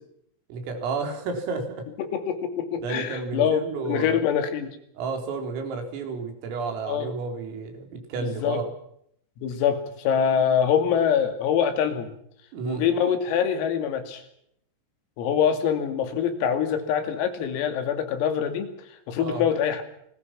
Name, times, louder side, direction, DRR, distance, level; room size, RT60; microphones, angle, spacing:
voice 1, 0.5-1.8 2.8-4.2 5.0-8.7 12.5-12.9 19.2-19.5, right 4 dB, 80° right, 5 dB, 6.4 m, -31 dB
voice 2, 2.0-4.8 6.9-7.1 8.2-8.6 9.4-12.1 12.7-14.2 15.2-18.7 19.1-19.8, left 8 dB, 85° left, 8 dB, 5.2 m, -24 dB
29.5 x 20.5 x 6.0 m, 0.72 s
omnidirectional pair, 5.9 m